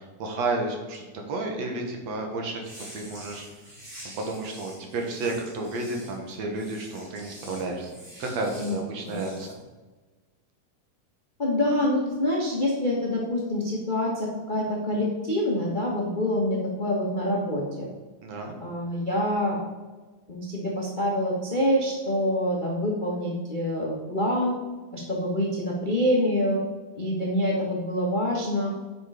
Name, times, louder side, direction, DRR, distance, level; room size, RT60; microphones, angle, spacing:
voice 1, 0.0-2.6 2.9-3.5 4.2-7.9 8.2-9.5 18.2-18.6, right 2 dB, 65° right, 2 dB, 2.3 m, -31 dB
sound 1, 2.6-9.5, equal, 25° right, 3.3 m, -46 dB
voice 2, 11.4-17.9 18.6-19.6 20.3-24.6 24.9-26.6 26.9-28.7, left 1 dB, 55° left, -3 dB, 0.5 m, -26 dB
9.5 x 5.4 x 4.9 m, 1.2 s
omnidirectional pair, 3.6 m